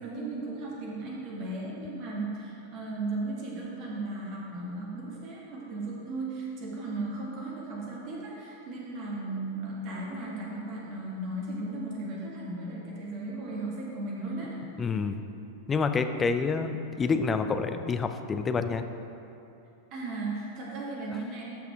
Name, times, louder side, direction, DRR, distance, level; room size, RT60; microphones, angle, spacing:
voice 1, 0.0-14.6 19.9-21.4, right 2 dB, 40° right, -4 dB, 2.2 m, -36 dB
voice 2, 14.8-15.2 15.7-18.8, left 4 dB, 20° left, 8 dB, 0.5 m, -28 dB
13.0 x 5.9 x 3.8 m, 2.8 s
figure-of-eight pair, 90°, 0 cm